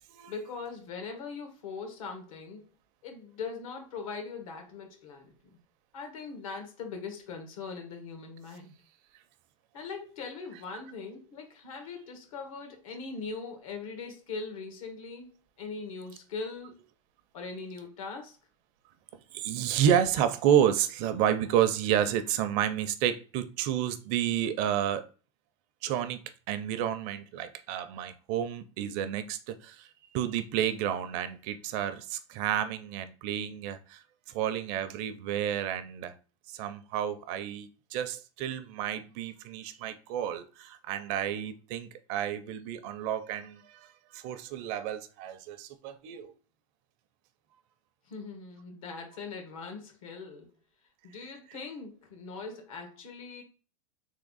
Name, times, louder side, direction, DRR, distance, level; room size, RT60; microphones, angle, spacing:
voice 1, 0.3-2.6 3.0-5.6 5.9-8.7 9.7-15.3 15.6-16.7 17.3-18.4 48.1-50.5 51.0-53.4, left 4 dB, 90° left, 1.6 m, -41 dB
voice 2, 19.3-25.0 25.8-26.2 26.5-29.9 30.1-36.1 36.5-46.3, right 10 dB, 45° right, 0.5 m, -30 dB
3.5 x 3.1 x 3.9 m
supercardioid pair, 155°, 17 cm